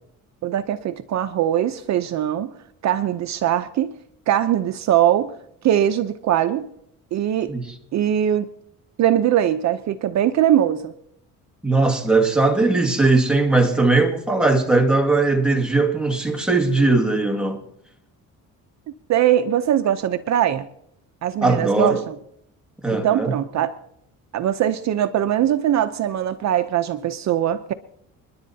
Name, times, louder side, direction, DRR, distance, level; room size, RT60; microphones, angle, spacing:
voice 1, 0.4-2.5 2.8-3.9 4.3-5.3 5.6-6.7 7.1-7.5 7.9-8.5 9.0-10.9 19.1-20.7 21.2-22.1 23.0-23.7 24.3-27.7, right 11 dB, 55° right, 0.7 m, -21 dB
voice 2, 11.6-17.6 21.4-22.0 22.8-23.3, right 3 dB, 5° right, 1.9 m, -19 dB
29.0 x 11.0 x 2.8 m
cardioid pair, 120°, 33 cm